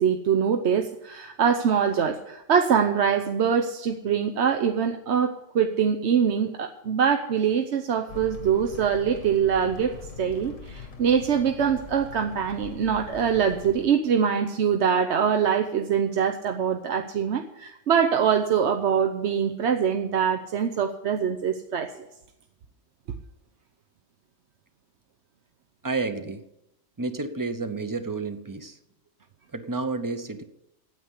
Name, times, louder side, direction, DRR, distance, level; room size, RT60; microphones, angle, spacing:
voice 1, 0.0-9.9 10.2-21.9, right 7 dB, 65° right, 5 dB, 1.0 m, -24 dB
sound 1, 8.1-13.9, left 5 dB, 80° left, 1.7 m, -42 dB
voice 2, 25.8-26.4 27.0-28.8 29.5-30.4, right 3 dB, 20° right, 9 dB, 0.7 m, -30 dB
9.4 x 8.4 x 9.7 m, 0.86 s
omnidirectional pair, 1.3 m